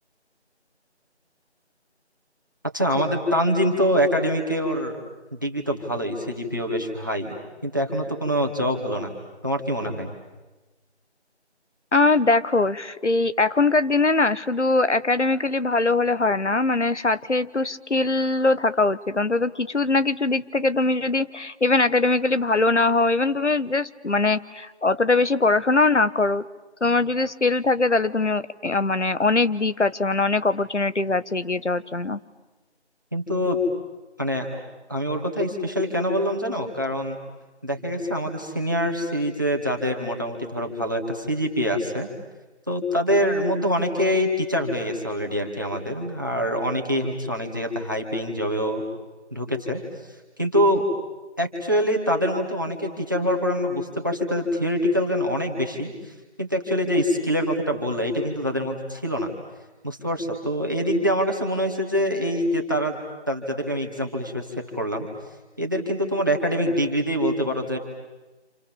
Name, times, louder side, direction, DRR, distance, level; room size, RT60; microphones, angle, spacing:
voice 1, 2.7-4.9 5.3-7.3 7.6-9.1 9.4-10.1 33.1-33.6 34.2-34.5 34.9-37.2 37.6-42.1 42.7-48.8 49.3-49.8 50.4-50.9 51.4-55.9 56.4-59.3 59.8-63.0 63.3-64.5 64.7-65.1 65.6-67.8, equal, 20° right, 2 dB, 2.0 m, -25 dB
voice 2, 11.9-26.4 26.8-32.2, left 3 dB, 90° left, 13 dB, 1.4 m, -22 dB
29.0 x 28.0 x 7.3 m, 1.1 s
figure-of-eight pair, 175°, 34 cm